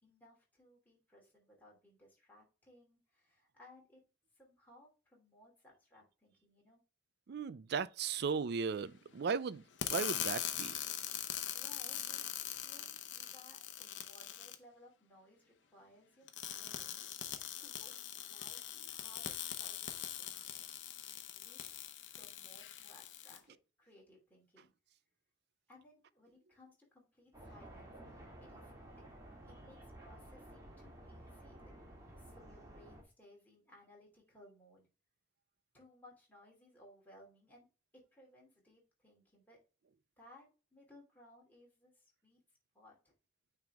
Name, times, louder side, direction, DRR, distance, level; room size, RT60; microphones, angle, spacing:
voice 1, 0.0-4.0 4.3-6.8 11.1-20.7 21.3-21.8 22.1-24.7 25.7-28.7 29.6-31.7 32.1-34.9 35.7-37.7 37.9-39.6 40.2-42.4 42.7-43.1, left 1 dB, 10° left, 2.7 m, -62 dB
voice 2, 7.3-9.6 9.9-10.8, right 5 dB, 60° right, 0.4 m, -36 dB
sound 1, 9.8-14.5 16.3-23.4, left 10 dB, 75° left, 0.8 m, -42 dB
sound 2, 27.3-33.0, right 1 dB, 20° right, 2.1 m, -53 dB
9.1 x 3.5 x 3.5 m
head